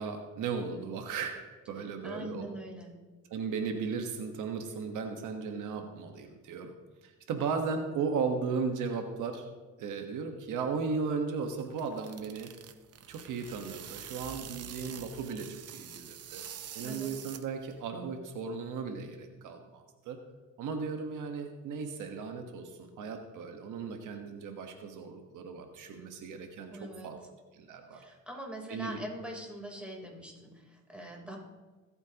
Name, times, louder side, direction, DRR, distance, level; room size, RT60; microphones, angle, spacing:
voice 1, 0.0-1.4 1.7-2.5 3.3-6.7 7.0-9.5 9.8-12.5 13.1-16.4 16.7-20.2 20.6-27.2 27.5-28.0 28.7-29.0, right 5 dB, 85° right, 5 dB, 1.4 m, -36 dB
voice 2, 2.0-2.9 16.8-17.1 26.7-27.1 27.9-31.4, right 1 dB, 5° right, -1 dB, 3.6 m, -43 dB
sound 1, 11.4-17.8, right 9 dB, 55° right, 0.8 m, -46 dB
22.0 x 8.8 x 3.0 m, 1.3 s
cardioid pair, 90°, 30 cm